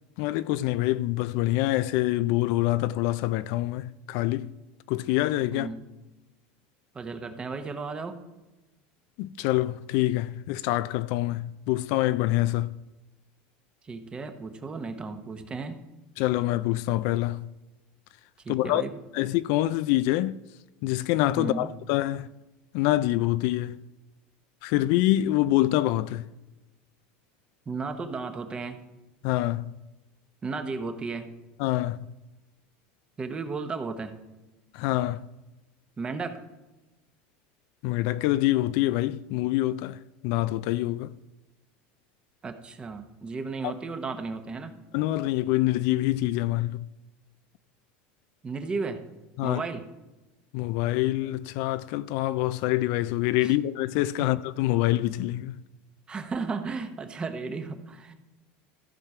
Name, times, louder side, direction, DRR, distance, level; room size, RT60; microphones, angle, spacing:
voice 1, 0.2-4.5 4.9-5.7 9.2-12.7 16.2-17.5 18.5-18.8 19.1-20.4 20.8-22.3 22.7-23.8 24.6-26.2 29.2-29.7 31.6-32.0 34.7-35.2 37.8-41.1 44.9-46.8 49.4-49.6 50.5-55.6, left 16 dB, 60° left, 0.3 m, -26 dB
voice 2, 5.5-5.9 6.9-8.2 13.8-15.8 18.4-19.0 21.3-21.7 27.7-28.8 30.4-31.3 33.2-34.2 36.0-36.4 42.4-44.7 48.4-49.0 49.4-49.9 53.4-53.6 54.2-54.3 56.1-58.1, right 4 dB, 20° right, 0.9 m, -34 dB
14.5 x 5.9 x 4.8 m
supercardioid pair, 140°, 5 cm